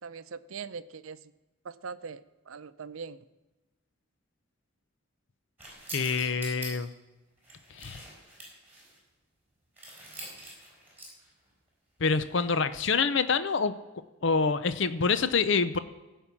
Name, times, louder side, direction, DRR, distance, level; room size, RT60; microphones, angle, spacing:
voice 1, 0.0-1.3 1.6-3.2, right 5 dB, 85° right, 14 dB, 0.6 m, -41 dB
sound 1, 5.6-6.7 7.4-9.0 9.8-11.3 12.2-12.5, right 1 dB, 10° right, 4.4 m, -45 dB
voice 2, 5.9-6.9 7.7-8.0 12.0-13.7 14.2-15.8, left 5 dB, 60° left, 12 dB, 0.6 m, -26 dB
15.5 x 5.5 x 7.2 m, 1.1 s
head